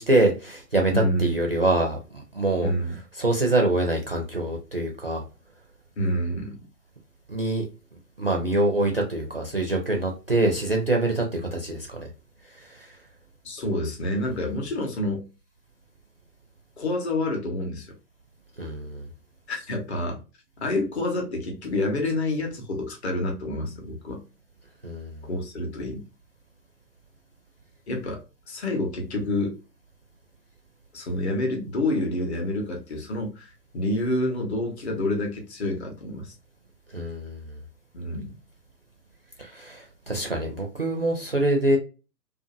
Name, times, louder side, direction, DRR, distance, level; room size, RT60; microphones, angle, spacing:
voice 1, 0.0-2.7 3.2-5.2 7.3-7.7 8.2-12.0 12.5-12.9 18.6-19.1 24.8-25.3 36.9-37.5 39.4-41.8, right 2 dB, 40° right, 1 dB, 0.4 m, -25 dB
voice 2, 0.9-1.4 2.6-3.0 6.0-6.6 13.4-15.2 16.8-17.9 19.5-20.2 20.6-24.2 25.2-26.0 27.9-28.2 28.5-29.5 30.9-36.3 37.9-38.3, left 1 dB, 40° left, 2 dB, 0.9 m, -28 dB
2.6 x 2.4 x 2.3 m, 0.32 s
figure-of-eight pair, 130°, 50 cm